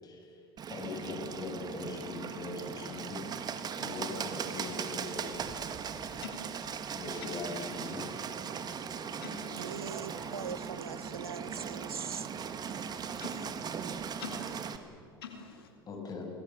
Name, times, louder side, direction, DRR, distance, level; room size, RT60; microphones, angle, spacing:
voice 1, 0.0-5.5 6.9-8.1 10.0-10.5 11.8-12.3 15.9-16.3, left 3 dB, 30° left, 2 dB, 7.3 m, -41 dB
Bird, 0.6-14.8, right 6 dB, 35° right, 2.0 m, -39 dB
voice 2, 6.9-7.3 9.2-9.7 13.2-13.5 13.8-14.7 15.2-15.7, left 6 dB, 75° left, 4 dB, 2.8 m, -46 dB
Chewing mastication / Dog, 7.6-10.6, right 8 dB, 65° right, 2.6 m, -60 dB
voice 3, 9.5-12.3, right 6 dB, 85° right, 15 dB, 1.0 m, -42 dB
27.5 x 21.5 x 7.4 m, 2.3 s
figure-of-eight pair, 75°, 12 cm